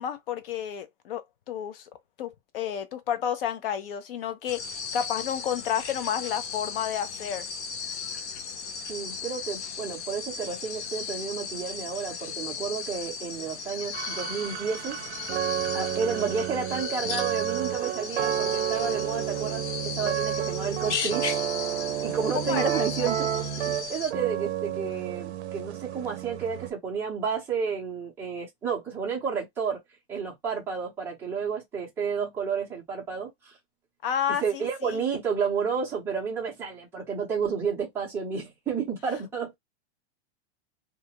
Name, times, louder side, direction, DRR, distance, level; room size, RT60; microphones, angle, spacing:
voice 1, 0.0-1.9 2.2-7.5 22.3-23.1 34.0-35.0, left 9 dB, 55° left, 0.6 m, -31 dB
sound 1, 4.5-24.1, left 6 dB, 85° left, 1.0 m, -36 dB
voice 2, 8.9-15.0 15.7-21.3 22.0-23.3 23.6-29.8 30.1-33.5 34.3-39.5, right 6 dB, 5° right, 0.6 m, -31 dB
sound 2, 13.9-26.7, right 11 dB, 70° right, 0.6 m, -31 dB
2.4 x 2.2 x 2.8 m
supercardioid pair, 175°, 34 cm